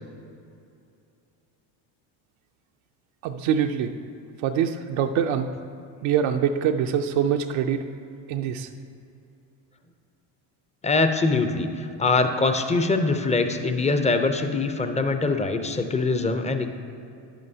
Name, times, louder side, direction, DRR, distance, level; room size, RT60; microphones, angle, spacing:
voice 1, 3.2-3.9 4.4-5.5 6.0-7.8 8.3-8.7, right 8 dB, 70° right, 5 dB, 0.6 m, -24 dB
voice 2, 10.8-16.7, left 3 dB, 15° left, 7 dB, 0.5 m, -23 dB
10.5 x 8.8 x 2.8 m, 2.6 s
supercardioid pair, 95°, 49 cm